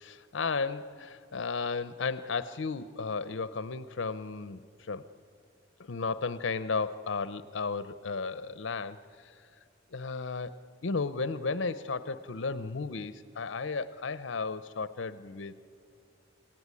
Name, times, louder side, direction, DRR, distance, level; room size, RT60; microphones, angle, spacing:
voice 1, 0.0-5.0 5.8-9.3 9.9-10.6 10.8-15.7, left 4 dB, 70° left, 14 dB, 0.6 m, -34 dB
27.0 x 17.0 x 9.7 m, 2.3 s
head